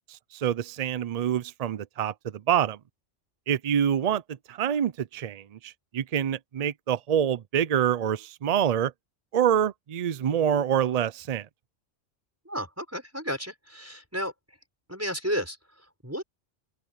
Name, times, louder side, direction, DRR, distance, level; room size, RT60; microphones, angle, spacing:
voice 1, 0.1-2.8 3.5-4.2 4.5-8.9 9.3-11.5, right 9 dB, 60° right, 0.4 m, -26 dB
voice 2, 12.5-14.3 14.9-16.2, equal, 10° right, 5.3 m, -33 dB
open air
omnidirectional pair, 1.2 m